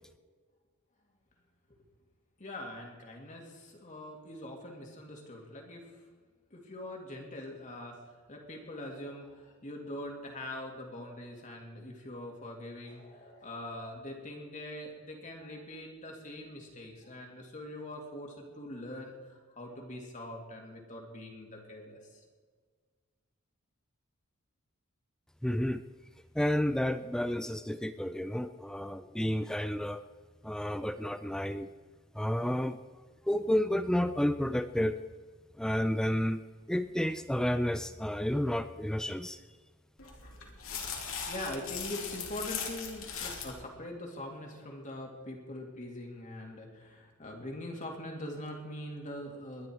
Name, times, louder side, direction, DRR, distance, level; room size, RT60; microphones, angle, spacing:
voice 1, 2.4-5.9 6.5-8.0 8.3-22.2 41.2-49.7, left 1 dB, 35° left, 0 dB, 2.5 m, -43 dB
voice 2, 25.4-25.8 26.4-30.0 30.4-31.7 32.2-32.8 33.3-35.0 35.6-39.4, left 1 dB, 5° left, 11 dB, 0.3 m, -31 dB
sound 1, 40.0-43.6, left 6 dB, 65° left, 2.8 m, -39 dB
21.5 x 11.0 x 4.6 m, 1.5 s
head